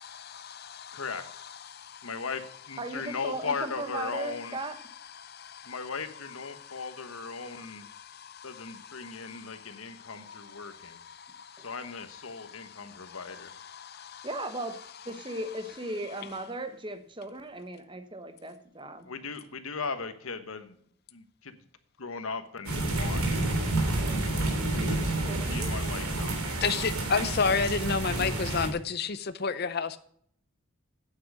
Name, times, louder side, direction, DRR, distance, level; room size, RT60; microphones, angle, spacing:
voice 1, 0.1-2.1 5.2-5.9 6.5-11.9 12.3-14.3 26.6-30.0, left 5 dB, 45° left, 0.6 m, -34 dB
voice 2, 0.9-1.2 2.0-2.4 2.7-4.6 5.7-7.8 8.4-11.0 11.6-13.5 19.0-20.8 21.1-21.6 22.0-23.3 24.2-24.6 24.9-25.1 25.4-26.4, left 4 dB, 75° left, 1.2 m, -37 dB
voice 3, 2.8-4.8 11.6-11.7 14.2-14.8 15.0-19.1 24.8-25.9, right 2 dB, 20° right, 1.0 m, -37 dB
sound 1, 22.6-28.7, right 2 dB, 85° right, 3.0 m, -29 dB
9.0 x 8.3 x 6.3 m
head